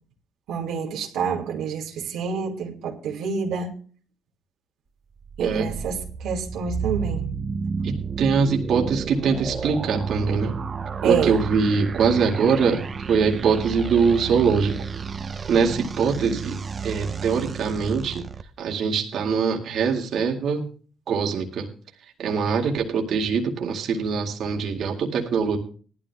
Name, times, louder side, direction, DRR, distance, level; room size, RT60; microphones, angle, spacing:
voice 1, 0.5-3.7 5.4-7.3 11.0-11.4, right 6 dB, 85° right, 2.2 m, -27 dB
sound 1, 5.2-18.4, right 6 dB, 40° right, 0.9 m, -31 dB
voice 2, 5.4-5.8 7.8-10.5 11.0-12.8 13.1-14.8 15.5-18.3 18.6-20.6 21.1-21.7 22.2-25.6, right 5 dB, 70° right, 2.1 m, -23 dB
19.0 x 12.5 x 2.3 m
cardioid pair, 90°, 0 cm